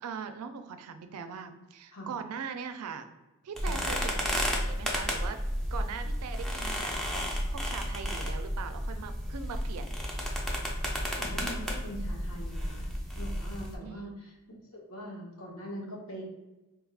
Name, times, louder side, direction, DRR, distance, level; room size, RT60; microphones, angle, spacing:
voice 1, 0.0-3.1 3.4-5.4 5.7-10.0 13.8-14.1, right 6 dB, 85° right, 8 dB, 0.4 m, -41 dB
sound 1, 3.6-13.7, equal, ahead, 0.4 m, -32 dB
voice 2, 11.1-14.3 14.7-16.2, equal, 70° left, -3 dB, 1.0 m, -42 dB
3.4 x 2.4 x 3.3 m, 1.0 s
head